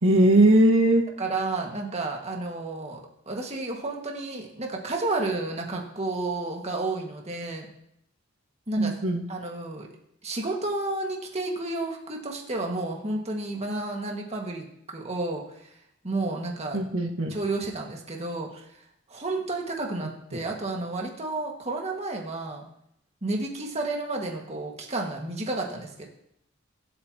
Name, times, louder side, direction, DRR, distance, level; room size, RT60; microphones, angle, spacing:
voice 1, 0.0-1.0 8.8-9.2 16.7-17.3 20.3-20.4, right 1 dB, 90° right, 1 dB, 1.7 m, -20 dB
voice 2, 1.2-3.0 3.3-7.7 8.7-8.9 9.3-9.9 10.2-15.4 16.0-16.8 17.3-18.5 19.1-22.6 23.2-26.0, right 2 dB, 35° right, 0 dB, 1.8 m, -31 dB
23.5 x 8.5 x 2.9 m, 0.75 s
head